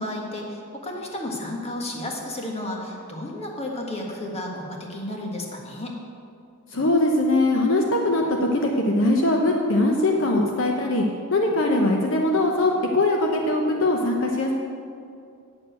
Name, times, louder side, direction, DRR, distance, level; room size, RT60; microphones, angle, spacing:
voice 1, 0.0-5.9, left 1 dB, 30° left, 0 dB, 1.5 m, -32 dB
voice 2, 6.7-11.0 11.3-14.5, left 2 dB, 60° left, 1 dB, 0.9 m, -21 dB
8.6 x 6.9 x 7.9 m, 2.4 s
head